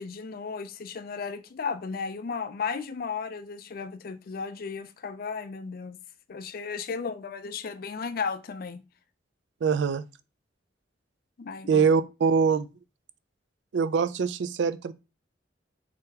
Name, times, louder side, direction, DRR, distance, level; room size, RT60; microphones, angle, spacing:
voice 1, 0.0-6.0 6.3-8.8 11.4-11.9, left 5 dB, 55° left, 0.4 m, -34 dB
voice 2, 9.6-10.0 11.7-12.7 13.7-14.9, right 6 dB, 70° right, 0.3 m, -23 dB
3.7 x 3.3 x 2.8 m
head